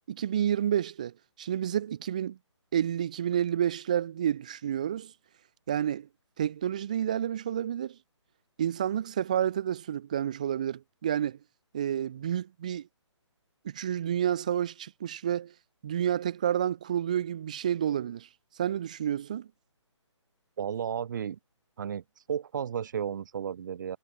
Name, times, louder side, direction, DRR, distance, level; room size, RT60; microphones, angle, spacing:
voice 1, 0.1-2.4 2.7-5.1 5.7-6.1 6.4-8.0 8.6-11.4 11.7-12.9 13.6-15.5 15.8-18.3 18.6-19.5, right 10 dB, 15° right, 0.4 m, -30 dB
voice 2, 20.6-21.4 21.8-22.0 22.3-24.0, right 8 dB, 40° right, 1.6 m, -33 dB
hypercardioid pair, 165°, 16 cm